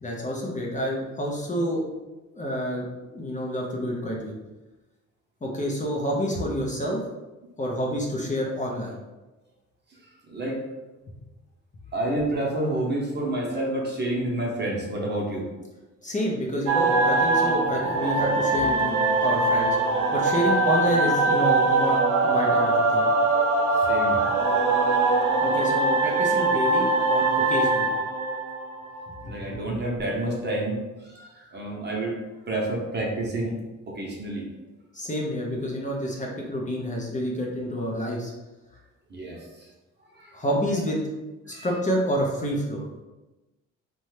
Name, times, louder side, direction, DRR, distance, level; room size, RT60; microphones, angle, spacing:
voice 1, 0.0-1.8 2.3-4.3 5.4-7.0 7.6-9.0 16.0-19.8 20.1-22.0 22.2-23.1 25.4-27.9 29.3-29.7 34.9-38.3 40.3-41.0 41.5-42.8, equal, 25° left, -2 dB, 0.6 m, -28 dB
voice 2, 10.3-10.6 11.9-15.5 23.9-24.2 24.9-25.0 29.2-33.6 33.9-34.5 39.1-39.6 40.1-40.4 41.5-41.7, right 1 dB, 35° right, -3 dB, 0.8 m, -29 dB
sound 1, 16.7-29.2, right 3 dB, 80° right, 0.6 m, -22 dB
2.7 x 2.2 x 3.2 m, 1.1 s
cardioid pair, 90°, 30 cm